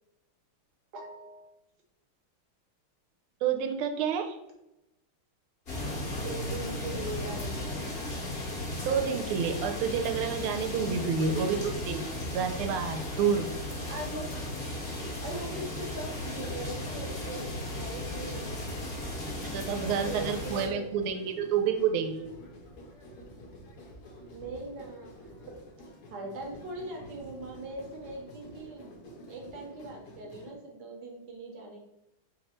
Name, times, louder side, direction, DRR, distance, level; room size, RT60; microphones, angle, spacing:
voice 1, 0.9-1.5 6.1-7.9 13.9-14.3 15.2-18.6 19.8-21.1 24.3-25.6 26.1-28.9 29.3-31.8, right 2 dB, 65° right, 0 dB, 1.3 m, -41 dB
voice 2, 3.4-4.4 8.8-12.0 12.3-13.5 19.5-22.3, right 6 dB, 90° right, 6 dB, 1.4 m, -29 dB
sound 1, 5.7-20.7, left 1 dB, 40° left, 1.0 m, -36 dB
sound 2, 15.0-30.5, equal, 65° left, 1.1 m, -49 dB
3.4 x 2.9 x 4.2 m, 0.89 s
omnidirectional pair, 2.3 m